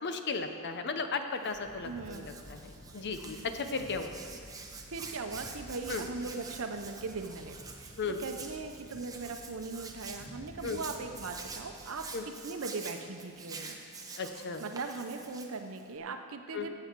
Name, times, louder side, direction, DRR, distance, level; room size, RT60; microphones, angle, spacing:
voice 1, 0.0-4.1 5.9-6.0 8.0-8.2 10.6-10.8 12.1-12.2 14.2-14.6 16.5-16.7, left 4 dB, 50° left, 7 dB, 0.7 m, -35 dB
Hands, 1.3-16.0, right 4 dB, 15° right, 0.8 m, -47 dB
sound 1, 1.5-11.8, equal, 20° left, 2.7 m, -52 dB
voice 2, 1.8-2.4 4.9-13.8 14.6-16.7, right 4 dB, 65° right, 6 dB, 0.8 m, -40 dB
15.0 x 7.8 x 4.6 m, 2.3 s
head